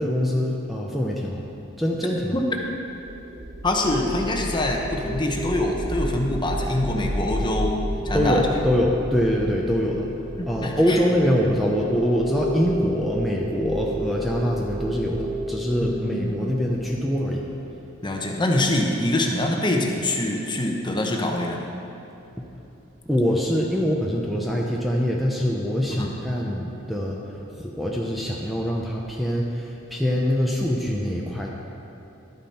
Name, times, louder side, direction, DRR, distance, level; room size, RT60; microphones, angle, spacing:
voice 1, 0.0-1.4 1.8-2.3 8.1-10.1 10.4-17.4 23.1-27.2 27.5-31.5, equal, ahead, -3 dB, 0.7 m, -24 dB
sound 1, 2.8-17.8, equal, 35° right, 1.2 m, -32 dB
voice 2, 3.6-8.5 10.4-11.0 15.8-16.4 18.0-21.7 25.9-26.2, left 1 dB, 25° left, 1 dB, 1.0 m, -25 dB
12.0 x 8.8 x 4.3 m, 2.9 s
head